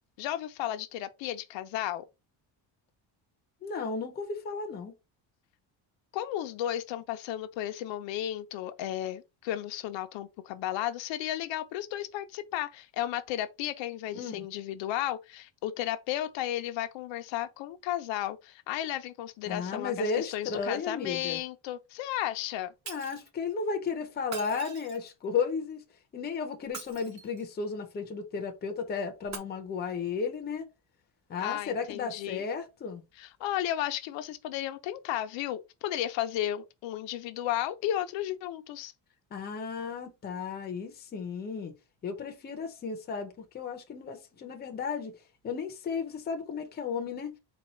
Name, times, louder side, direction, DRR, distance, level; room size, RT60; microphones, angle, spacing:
voice 1, 0.2-2.0 6.1-22.7 31.4-32.5 33.2-38.9, left 12 dB, 80° left, 0.6 m, -34 dB
voice 2, 3.6-4.9 14.1-14.4 19.5-21.4 22.9-25.8 26.1-30.7 31.3-33.0 39.3-41.7 42.0-45.2 45.4-47.3, left 5 dB, 25° left, 0.6 m, -34 dB
Shatter, 22.9-23.3 24.2-25.2 26.6-27.5 29.2-29.4, right 5 dB, 40° right, 1.0 m, -43 dB
4.2 x 2.3 x 4.2 m
cardioid pair, 180°, 44 cm